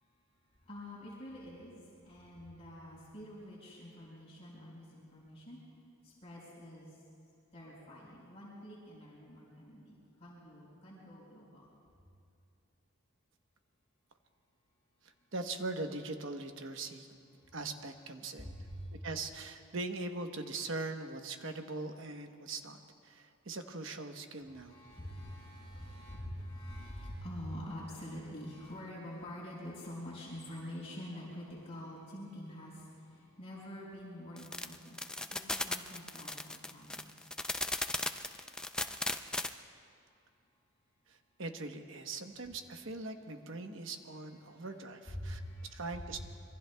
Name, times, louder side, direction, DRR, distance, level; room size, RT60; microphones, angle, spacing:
voice 1, 0.7-5.6 6.0-7.0 7.5-11.7 17.4-17.5 18.4-18.9 24.5-35.0 35.3-37.4 44.5-44.7 45.1-45.8 46.1-46.2, equal, 30° left, -6 dB, 4.7 m, -46 dB
voice 2, 15.0-17.1 17.5-18.6 19.0-24.8 41.1-46.2, right 3 dB, 65° right, 5 dB, 1.0 m, -41 dB
sound 1, 34.4-39.5, left 2 dB, 5° left, 0.4 m, -36 dB
26.5 x 23.0 x 2.3 m, 2.5 s
head